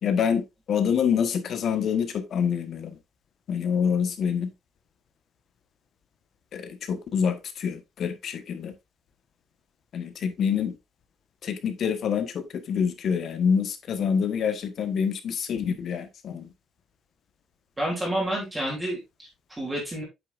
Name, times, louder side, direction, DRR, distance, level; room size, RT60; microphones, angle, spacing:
voice 1, 0.0-0.4 0.7-3.0 3.5-4.5 6.5-8.7 9.9-10.7 11.4-16.5, left 7 dB, 45° left, 1.3 m, -26 dB
voice 2, 17.8-20.0, right 1 dB, 10° right, 3.0 m, -30 dB
8.5 x 6.8 x 2.5 m
cardioid pair, 165°, 0 cm